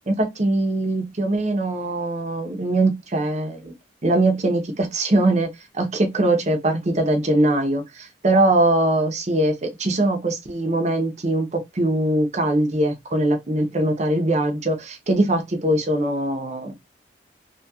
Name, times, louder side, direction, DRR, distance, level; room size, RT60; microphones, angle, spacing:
voice 1, 0.1-3.7 4.0-5.5 5.7-16.7, right 1 dB, 40° right, 0.7 m, -21 dB
2.8 x 2.3 x 2.7 m
head